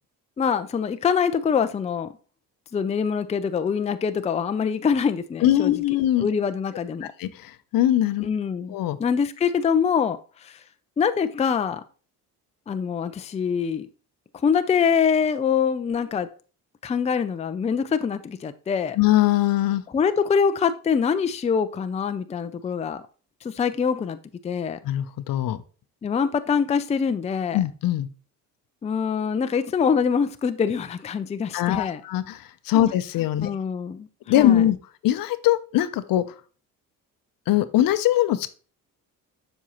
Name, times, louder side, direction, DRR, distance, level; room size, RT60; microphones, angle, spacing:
voice 1, 0.4-2.1 2.7-5.7 6.2-7.1 8.2-8.7 9.0-10.6 11.0-11.8 12.7-13.9 14.4-16.3 16.8-19.0 19.9-23.0 23.4-24.2 24.4-24.8 26.0-27.6 28.8-32.0 33.4-34.1 34.3-34.6, left 6 dB, 20° left, 0.4 m, -24 dB
voice 2, 5.4-6.3 7.0-8.3 8.7-9.0 19.0-19.8 24.8-25.6 27.5-28.1 31.5-33.5 34.3-34.8 35.0-36.2 37.5-38.5, left 13 dB, 65° left, 0.7 m, -21 dB
7.3 x 5.4 x 2.9 m
cardioid pair, 90°, 37 cm